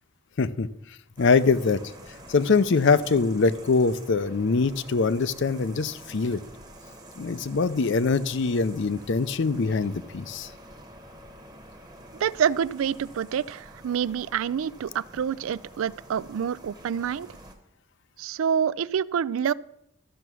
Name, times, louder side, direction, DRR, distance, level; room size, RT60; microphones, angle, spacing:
voice 1, 0.4-0.7 1.2-1.8 2.3-6.4 7.2-10.5, left 4 dB, 55° left, 15 dB, 0.5 m, -23 dB
sound 1, 1.2-17.5, right 1 dB, 20° right, 1.1 m, -47 dB
voice 2, 12.2-17.3 18.2-19.5, right 8 dB, 70° right, 20 dB, 0.3 m, -27 dB
12.5 x 6.8 x 6.2 m, 0.81 s
head